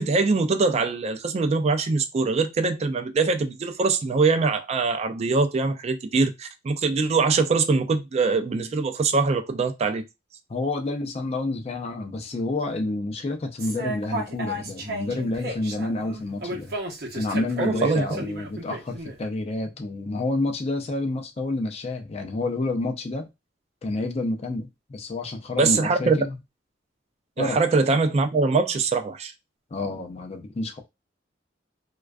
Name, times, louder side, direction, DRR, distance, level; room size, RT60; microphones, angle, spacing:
voice 1, 0.0-10.0 17.6-18.1 25.6-26.2 27.4-29.3, right 4 dB, 35° right, 0.3 m, -23 dB
voice 2, 10.5-16.7 17.1-23.3 23.8-26.4 27.4-27.6 29.7-30.8, left 2 dB, 35° left, 0.4 m, -29 dB
sound 1, 13.6-19.1, right 1 dB, 55° right, 0.7 m, -33 dB
2.4 x 2.2 x 2.2 m
head